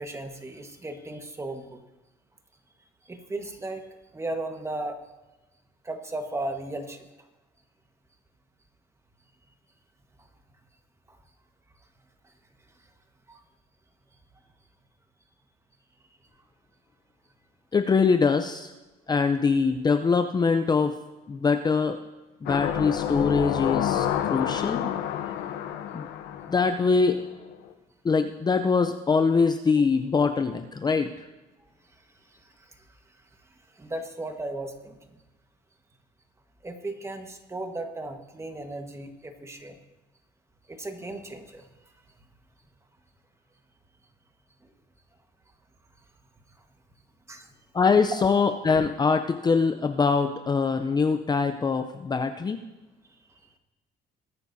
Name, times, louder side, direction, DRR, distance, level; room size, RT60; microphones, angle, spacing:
voice 1, 0.0-1.8 3.0-5.0 5.8-7.1 11.1-11.2 12.2-12.3 13.3-13.4 32.3-32.9 33.7-35.0 36.6-39.8 40.7-41.7 47.3-47.5 53.3-53.4, right 2 dB, 15° right, 5 dB, 1.4 m, -36 dB
voice 2, 17.7-18.7 19.1-20.9 21.3-22.0 22.4-24.9 25.9-26.1 26.5-27.2 28.0-31.2 47.7-52.6, left 5 dB, 25° left, 7 dB, 0.6 m, -23 dB
sound 1, 22.5-27.3 27.7-27.8, left 10 dB, 85° left, 0.9 m, -29 dB
21.5 x 9.7 x 2.7 m, 1.1 s
cardioid pair, 110°, 17 cm